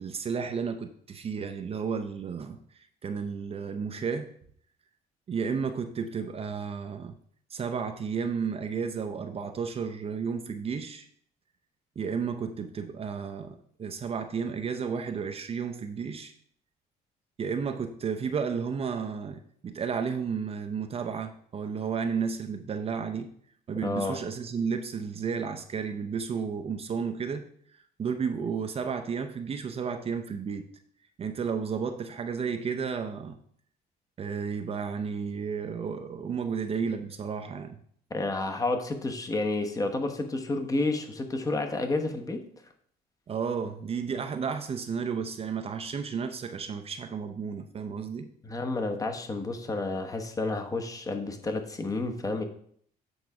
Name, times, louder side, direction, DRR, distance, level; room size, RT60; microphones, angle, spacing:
voice 1, 0.0-4.3 5.3-7.1 7.5-11.1 12.0-16.3 17.4-23.3 23.7-27.5 28.0-30.7 31.2-33.4 34.2-37.8 43.3-48.3, right 6 dB, 35° right, 6 dB, 0.6 m, -32 dB
voice 2, 23.8-24.2 38.1-42.4 48.4-52.4, left 2 dB, 20° left, 5 dB, 1.0 m, -30 dB
8.0 x 4.0 x 4.7 m, 0.62 s
cardioid pair, 110°, 17 cm